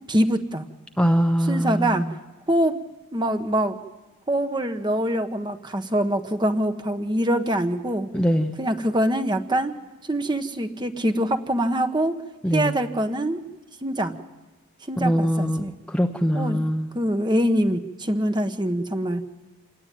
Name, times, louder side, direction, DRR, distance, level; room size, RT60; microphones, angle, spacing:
voice 1, 0.1-0.7 1.4-2.1 2.5-2.8 3.1-3.8 4.3-8.1 8.6-9.7 10.0-12.2 12.5-13.4 13.8-14.2 14.9-15.7 16.3-16.6 16.9-19.2, right 1 dB, 20° right, 7 dB, 1.3 m, -24 dB
voice 2, 1.0-2.1 8.1-8.6 12.4-12.7 15.0-15.6 15.9-16.9, equal, 5° left, 4 dB, 1.0 m, -22 dB
28.0 x 19.0 x 9.2 m, 1.2 s
head